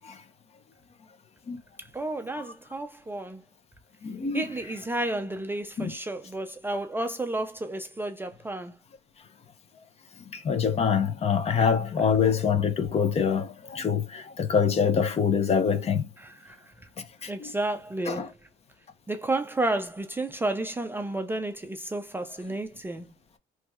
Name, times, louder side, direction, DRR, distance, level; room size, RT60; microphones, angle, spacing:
voice 1, 1.9-3.4 4.3-8.7 16.2-16.6 17.3-18.3 19.1-23.1, right 2 dB, 10° right, 0.4 m, -31 dB
voice 2, 4.0-4.5 5.8-5.9 10.4-16.1 17.2-17.5 18.1-18.3, left 6 dB, 40° left, 0.7 m, -25 dB
3.3 x 3.0 x 2.2 m
cardioid pair, 110°, 17 cm